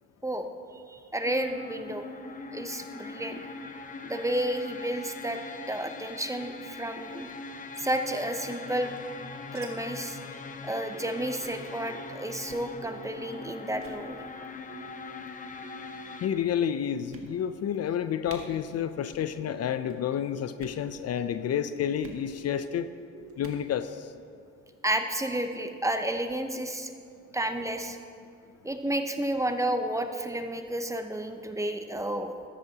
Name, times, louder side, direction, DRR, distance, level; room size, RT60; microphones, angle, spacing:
voice 1, 0.7-2.0 2.5-3.4 4.0-5.4 5.7-7.3 7.8-9.0 9.5-10.2 10.6-14.2 24.8-26.9 27.3-28.0 28.6-32.3, right 1 dB, 10° right, 6 dB, 0.7 m, -31 dB
sound 1, 1.2-16.3, left 3 dB, 25° left, 0.8 m, -42 dB
sound 2, 8.5-9.7 9.9-10.0 10.3-10.5 10.8-11.0 11.4-11.7 12.4-12.7 13.3-13.5 13.7-14.0 14.9-15.3 16.0-16.1 16.6-16.7 17.1-17.7 17.9-18.0 18.2-18.4 19.0-19.3 19.6-20.0 20.5-20.8 22.0-22.2 23.3-23.6, right 5 dB, 45° right, 1.6 m, -50 dB
sound 3, 10.9-11.4 11.9-12.4 12.8-13.3 13.7-14.2 14.7-15.2 15.6-16.1 16.6-17.0 17.5-18.0 18.4-18.9 19.4-19.9 20.3-20.8 21.3-21.7 22.2-22.7 23.1-23.6, right 8 dB, 70° right, 0.8 m, -50 dB
voice 2, 16.2-22.9 23.4-24.1, left 9 dB, 55° left, 11 dB, 0.5 m, -30 dB
13.5 x 12.5 x 2.9 m, 2.3 s
cardioid pair, 90°, 30 cm